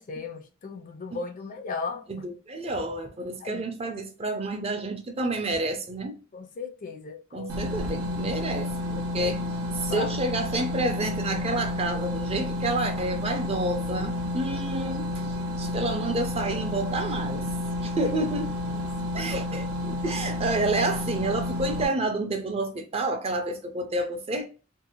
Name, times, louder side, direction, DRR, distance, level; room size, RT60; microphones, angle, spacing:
voice 1, 0.0-2.1 3.4-3.9 6.3-7.5 9.2-9.5 9.9-10.2 18.0-18.2 18.6-18.9, left 5 dB, 40° left, 0.4 m, -37 dB
voice 2, 2.1-6.2 7.3-9.4 9.8-15.1 15.6-17.5 17.8-18.5 19.1-24.5, right 2 dB, 30° right, 0.4 m, -29 dB
sound 1, 7.5-21.9, left 1 dB, 85° right, 0.5 m, -31 dB
2.6 x 2.0 x 2.8 m
head